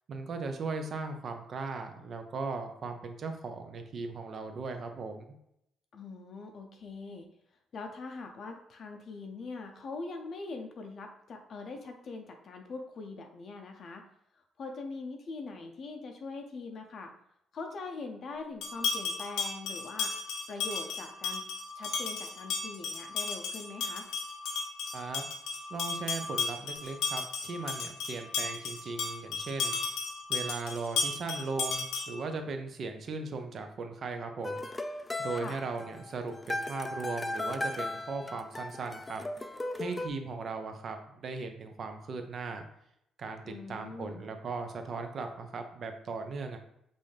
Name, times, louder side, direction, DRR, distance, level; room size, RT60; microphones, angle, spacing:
voice 1, 0.1-5.3 24.9-25.3 25.7-29.8 30.3-34.7 35.2-39.2 39.8-42.6 43.2-46.6, right 4 dB, 55° right, 5 dB, 0.7 m, -38 dB
voice 2, 5.9-7.3 7.7-14.0 14.3-17.1 17.5-20.1 20.5-21.4 21.7-24.1 35.3-35.6 43.4-44.2, left 3 dB, 55° left, 3 dB, 0.6 m, -42 dB
sound 1, 18.6-32.3, left 4 dB, 85° left, 0.9 m, -34 dB
sound 2, 34.4-40.1, left 2 dB, 20° left, 0.4 m, -37 dB
5.4 x 2.6 x 3.3 m, 0.77 s
cardioid pair, 90°, 0 cm